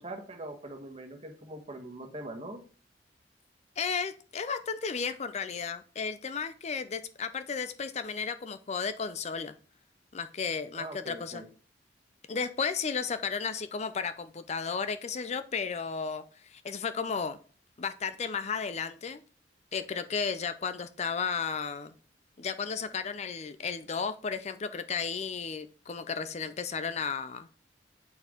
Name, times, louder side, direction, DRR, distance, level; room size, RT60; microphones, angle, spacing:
voice 1, 0.0-2.6 10.7-11.5, right 1 dB, 35° right, 5 dB, 1.4 m, -42 dB
voice 2, 3.8-9.5 10.1-11.4 12.3-17.4 17.8-19.2 19.7-21.9 22.4-27.5, left 5 dB, 40° left, 11 dB, 0.5 m, -34 dB
8.4 x 4.5 x 5.0 m, 0.41 s
head